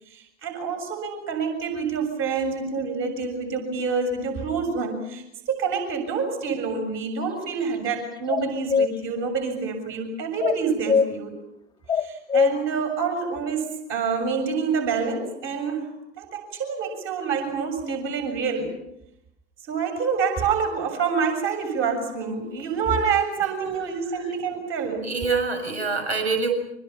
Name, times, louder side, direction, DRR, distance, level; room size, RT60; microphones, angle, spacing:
voice 1, 0.1-11.3 12.0-18.7 19.7-25.1, right 5 dB, 40° right, 5 dB, 7.1 m, -27 dB
sound 1, 8.3-8.9 10.4-11.1 11.9-12.5, left 6 dB, 10° left, 1.1 m, -21 dB
voice 2, 25.0-26.5, right 4 dB, 70° right, 5 dB, 7.4 m, -25 dB
30.0 x 25.0 x 5.9 m, 0.82 s
figure-of-eight pair, 85°, 34 cm